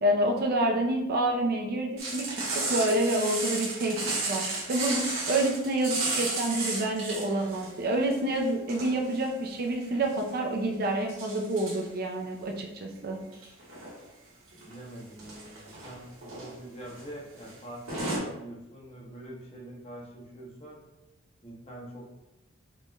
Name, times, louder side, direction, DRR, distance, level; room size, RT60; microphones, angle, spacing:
voice 1, 0.0-4.0 4.2-13.2, right 1 dB, 50° right, 1 dB, 0.5 m, -28 dB
sound 1, 2.0-7.7 8.0-9.2 9.8-10.3 11.1-11.8 13.3-14.0 14.5-14.7 15.1-15.9 16.2-16.5 16.9-17.0 17.3-17.5 17.9-18.2, right 2 dB, 90° right, 1.4 m, -33 dB
voice 2, 14.6-20.9 21.4-22.0, right 1 dB, 30° left, -4 dB, 1.0 m, -45 dB
5.1 x 3.3 x 2.2 m, 0.92 s
head